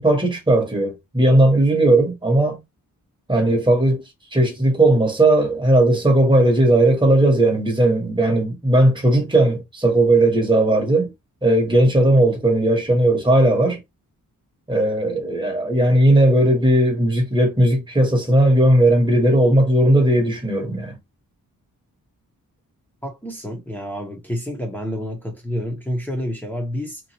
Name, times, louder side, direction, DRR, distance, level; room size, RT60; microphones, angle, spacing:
voice 1, 0.0-2.6 3.3-4.0 4.3-11.1 11.4-13.8 14.7-20.9, right 1 dB, 15° right, 1.1 m, -17 dB
voice 2, 23.0-27.0, equal, 5° left, 0.9 m, -29 dB
3.0 x 2.5 x 2.8 m
wide cardioid pair, 125°, 33 cm